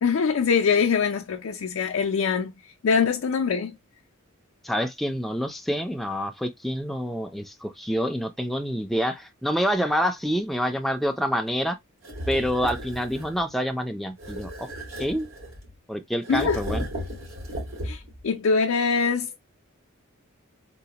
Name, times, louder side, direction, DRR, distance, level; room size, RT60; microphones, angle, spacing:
voice 1, 0.0-2.5 2.8-3.7 16.3-16.6 17.8-19.4, left 5 dB, 70° left, 0.4 m, -23 dB
voice 2, 4.6-11.8 12.3-14.7 15.0-15.3 15.9-16.9, equal, ahead, 0.4 m, -27 dB
sound 1, 12.0-13.4 14.2-15.7 16.2-18.2, equal, 80° right, 2.4 m, -35 dB
3.9 x 2.1 x 2.8 m
head